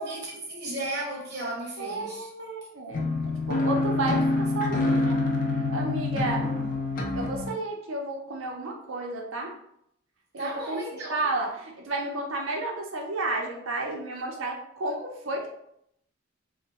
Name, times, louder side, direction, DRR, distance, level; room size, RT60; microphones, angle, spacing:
voice 1, 0.0-2.3 10.4-11.3, right 1 dB, 55° right, 1.0 m, -35 dB
voice 2, 1.8-5.2 5.5-6.5 7.2-9.5 10.4-10.8 11.1-15.6, right 2 dB, 70° right, 0.6 m, -32 dB
sound 1, 2.9-7.5, left 2 dB, 40° left, 0.4 m, -26 dB
2.9 x 2.1 x 2.9 m
head